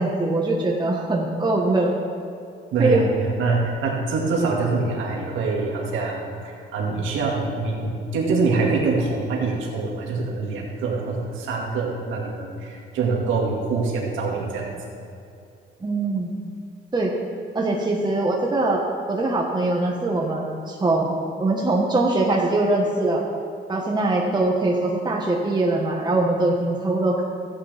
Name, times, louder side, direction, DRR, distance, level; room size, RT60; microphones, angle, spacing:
voice 1, 0.0-1.9 2.8-3.1 15.8-16.3 16.9-17.1 17.5-18.8 19.1-21.1 21.4-23.2 23.7-27.2, right 2 dB, 20° right, -2 dB, 1.4 m, -22 dB
voice 2, 2.7-14.7, right 3 dB, 85° right, -2 dB, 2.2 m, -25 dB
14.0 x 9.7 x 3.5 m, 2.6 s
cardioid pair, 90°, 20 cm